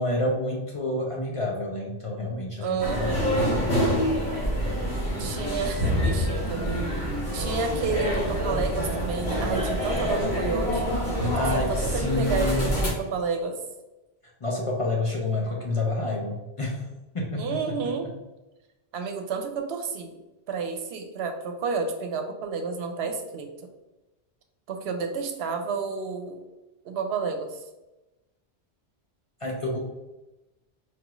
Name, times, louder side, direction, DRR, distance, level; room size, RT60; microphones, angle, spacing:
voice 1, 0.0-3.8 7.6-7.7 11.3-12.7 14.4-16.9 17.1-17.9 29.4-29.8, left 2 dB, 40° left, -2 dB, 0.5 m, -29 dB
voice 2, 2.6-3.3 5.2-6.8 7.3-13.5 17.4-18.1 18.9-20.2 20.5-23.5 24.7-26.4 26.8-27.6, right 5 dB, 80° right, 5 dB, 0.8 m, -31 dB
sound 1, 2.8-12.9, equal, 80° left, 1.4 m, -26 dB
4.5 x 2.4 x 3.0 m, 1.0 s
omnidirectional pair, 1.1 m